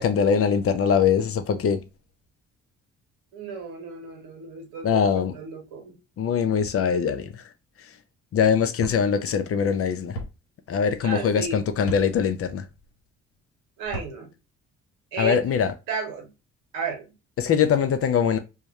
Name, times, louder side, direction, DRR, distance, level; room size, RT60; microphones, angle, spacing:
voice 1, 0.0-1.8 4.8-5.3 6.2-7.4 8.3-10.2 10.7-12.7 15.2-15.7 17.4-18.4, left 7 dB, 45° left, 0.4 m, -22 dB
voice 2, 3.3-6.0 11.0-11.6 13.8-14.3 15.1-15.6 15.9-16.3 16.7-17.1, right 5 dB, 75° right, 0.9 m, -33 dB
sound 1, 8.8-9.0 10.1-10.3 11.8-12.0 13.8-14.1, right 1 dB, 80° left, 0.7 m, -34 dB
2.2 x 2.0 x 2.8 m
hypercardioid pair, 55°, 33 cm